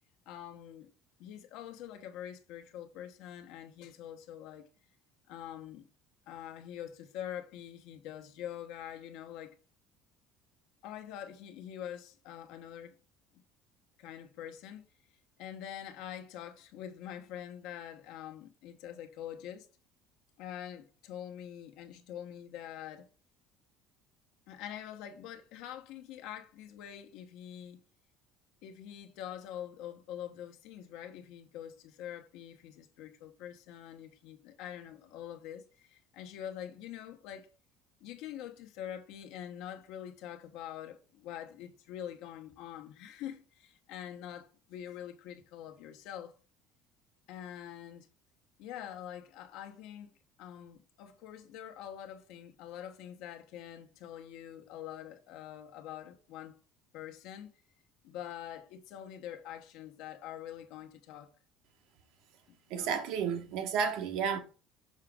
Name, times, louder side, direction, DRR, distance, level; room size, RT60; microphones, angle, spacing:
voice 1, 0.3-0.9 1.2-4.7 5.3-5.9 6.3-9.5 10.8-12.9 14.0-14.8 15.4-19.7 20.4-23.1 24.5-27.8 28.6-37.5 38.0-46.3 47.3-48.1 48.6-50.1 50.4-56.6 56.9-57.5 58.0-61.3 62.5-63.0, left 10 dB, 75° left, 1.0 m, -45 dB
voice 2, 62.7-64.4, right 7 dB, 75° right, 1.2 m, -32 dB
6.5 x 4.9 x 3.5 m
cardioid pair, 125°, 0 cm